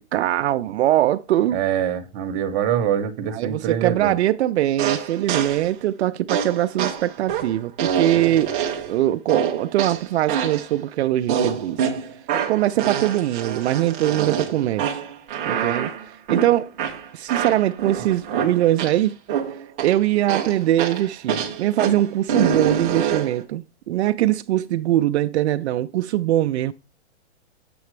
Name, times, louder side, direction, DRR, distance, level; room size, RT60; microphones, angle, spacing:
voice 1, 0.0-1.6 3.3-8.5 8.9-11.8 12.5-15.0 15.4-15.9 16.3-16.7 17.1-19.2 19.8-26.7, right 13 dB, 70° right, 0.5 m, -22 dB
voice 2, 1.5-4.1, right 9 dB, 30° right, 0.9 m, -24 dB
sound 1, 4.8-5.7 6.3-9.0 9.3-10.7 11.3-19.0 19.3-20.0 20.3-23.4, right 7 dB, 10° right, 0.3 m, -26 dB
7.5 x 7.0 x 3.2 m
hypercardioid pair, 155°, 35 cm